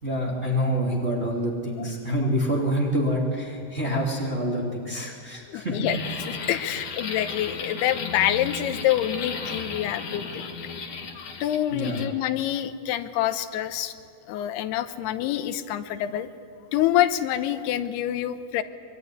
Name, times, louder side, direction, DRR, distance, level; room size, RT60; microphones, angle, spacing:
voice 1, 0.0-5.8 6.7-6.8 11.7-12.0, equal, 20° right, -3 dB, 2.7 m, -26 dB
voice 2, 5.5-6.0 6.3-10.8 11.1-13.9 14.3-16.3 16.7-18.6, left 12 dB, 80° left, 9 dB, 2.9 m, -26 dB
sound 1, 5.8-12.1, left 5 dB, 50° left, 2.3 m, -35 dB
25.5 x 21.5 x 9.9 m, 2.3 s
omnidirectional pair, 4.7 m